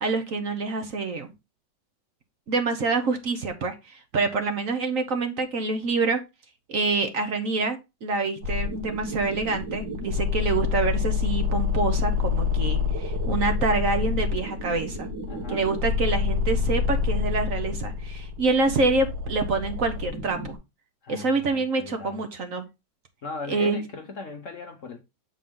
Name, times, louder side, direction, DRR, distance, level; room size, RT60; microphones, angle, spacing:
voice 1, 0.0-1.3 2.5-6.2 6.7-15.0 15.5-20.6 21.1-22.6 23.5-23.8, right 3 dB, 55° right, 1.3 m, -26 dB
sound 1, 8.4-20.6, left 5 dB, 90° right, 2.1 m, -27 dB
voice 2, 10.4-11.2 15.3-15.6 21.0-22.2 23.2-25.0, left 4 dB, 50° left, 1.2 m, -39 dB
7.9 x 4.4 x 3.7 m
omnidirectional pair, 1.9 m